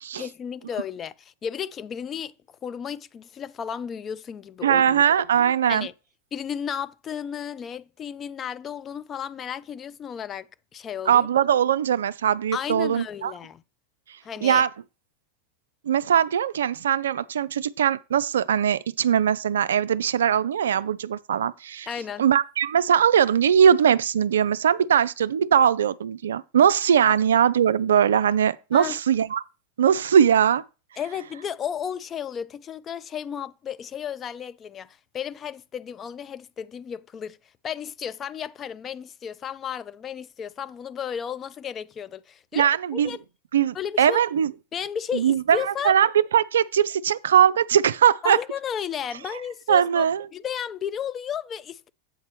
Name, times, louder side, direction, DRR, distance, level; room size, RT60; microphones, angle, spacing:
voice 1, 0.1-2.3 2.6-5.0 5.7-5.9 6.3-11.3 12.5-13.6 14.2-14.6 21.8-22.3 27.1-27.2 28.7-29.0 31.0-37.4 37.6-43.2 43.7-44.2 44.7-45.9 48.2-50.1 50.3-51.9, left 8 dB, 25° left, 0.4 m, -33 dB
voice 2, 4.6-5.9 11.1-13.3 14.4-14.7 15.9-21.9 22.2-29.4 29.8-30.6 42.5-43.1 43.5-44.5 45.1-48.4 49.7-50.2, right 8 dB, 65° right, 0.4 m, -20 dB
8.2 x 4.2 x 6.0 m
figure-of-eight pair, 90°, 0 cm